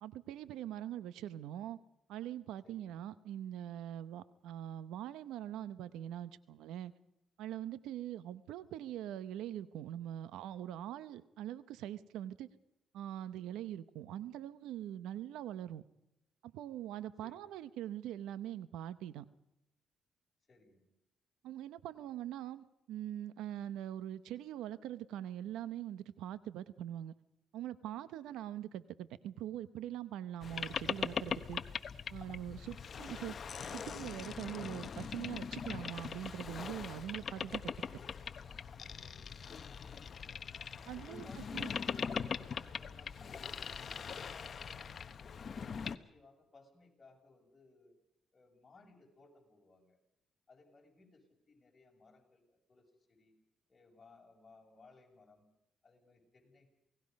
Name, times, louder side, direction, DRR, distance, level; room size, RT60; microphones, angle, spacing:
voice 1, 0.0-1.8 2.1-6.9 7.4-12.5 12.9-15.8 16.4-19.3 21.4-27.1 27.5-31.6 32.1-33.4 33.7-37.7 40.9-41.3 41.5-41.7, right 11 dB, 90° right, 15 dB, 0.8 m, -43 dB
voice 2, 17.2-17.5 20.5-20.8 39.0-39.4 39.8-40.2 40.9-45.0 45.4-48.0 48.3-50.0 50.5-53.3 53.7-55.5 55.8-56.7, left 2 dB, 30° left, 0 dB, 7.0 m, -62 dB
Boat Water vehicle, 30.4-46.0, left 6 dB, 45° left, 1.0 m, -41 dB
28.5 x 18.5 x 5.3 m, 0.88 s
cardioid pair, 90°, 0 cm